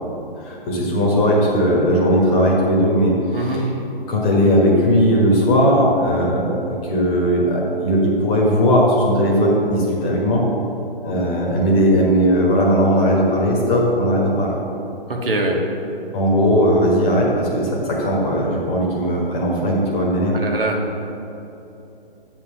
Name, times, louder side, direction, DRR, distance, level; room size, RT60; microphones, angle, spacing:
voice 1, 0.4-3.7 4.1-10.4 11.0-14.5 16.1-20.4, equal, 20° left, -2 dB, 1.2 m, -18 dB
voice 2, 3.3-3.7 15.1-15.6 20.3-20.8, right 1 dB, 70° right, 1 dB, 1.3 m, -22 dB
8.2 x 3.8 x 6.2 m, 2.9 s
figure-of-eight pair, 135°, 29 cm